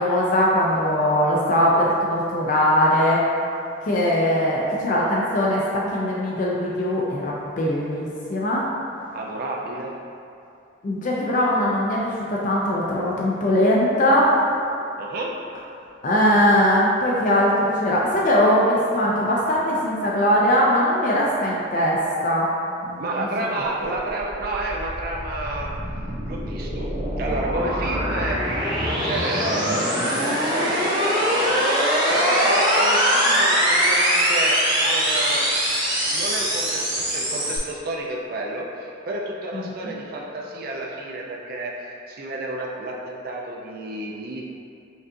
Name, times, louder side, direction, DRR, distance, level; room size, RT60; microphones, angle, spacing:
voice 1, 0.0-3.2 3.9-8.7 10.8-14.3 16.0-22.5 22.8-23.3 23.8-23.9 39.5-39.7, equal, 40° left, -4 dB, 0.4 m, -21 dB
voice 2, 9.1-10.0 15.0-15.3 23.0-25.7 26.3-26.9 27.2-28.4 28.9-35.5 36.1-44.4, right 2 dB, 50° right, -2 dB, 0.4 m, -30 dB
sound 1, 24.1-37.6, equal, 25° right, 0.7 m, -22 dB
5.1 x 2.4 x 2.5 m, 2.7 s
head